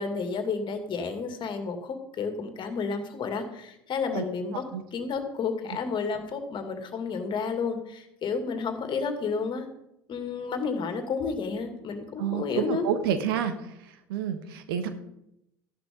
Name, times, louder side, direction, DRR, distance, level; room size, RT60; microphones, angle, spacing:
voice 1, 0.0-4.6 4.9-9.7 10.1-12.9, left 5 dB, 40° left, 6 dB, 2.4 m, -31 dB
voice 2, 12.2-13.6 14.1-14.9, right 8 dB, 75° right, 9 dB, 1.3 m, -28 dB
14.5 x 11.0 x 3.8 m, 0.83 s
hypercardioid pair, 70°, 12 cm